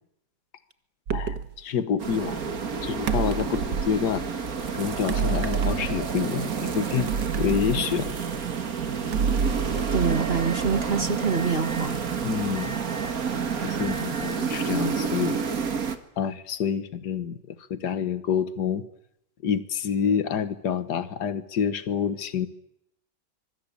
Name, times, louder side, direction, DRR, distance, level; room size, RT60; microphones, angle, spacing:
voice 1, 1.1-2.4 2.8-4.2 4.7-8.1 12.2-12.7 13.6-15.4 16.2-18.8 19.4-22.5, left 7 dB, 75° left, 12 dB, 1.9 m, -28 dB
sound 1, 1.1-1.5 3.1-4.0 5.1-6.3 7.1-8.4 9.1-11.0, right 6 dB, 85° right, 1.9 m, -29 dB
sound 2, 2.0-16.0, right 6 dB, 55° right, 2.2 m, -29 dB
voice 2, 9.9-12.0, right 5 dB, 35° right, 8 dB, 1.8 m, -26 dB
Alarm, 10.1-10.6 11.3-11.9 12.6-13.2 13.8-14.4, right 1 dB, 10° right, 4.0 m, -41 dB
25.0 x 23.5 x 8.6 m, 0.76 s
omnidirectional pair, 1.8 m